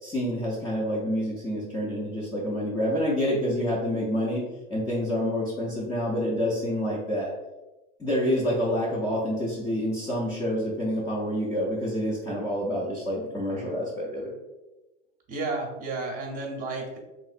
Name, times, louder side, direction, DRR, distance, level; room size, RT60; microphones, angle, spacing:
voice 1, 0.0-4.4 4.7-7.3 8.0-14.3, equal, 10° left, -6 dB, 0.4 m, -28 dB
voice 2, 15.3-17.0, right 3 dB, 25° right, 0 dB, 0.7 m, -32 dB
3.1 x 2.8 x 2.4 m, 1.1 s
supercardioid pair, 130°, 37 cm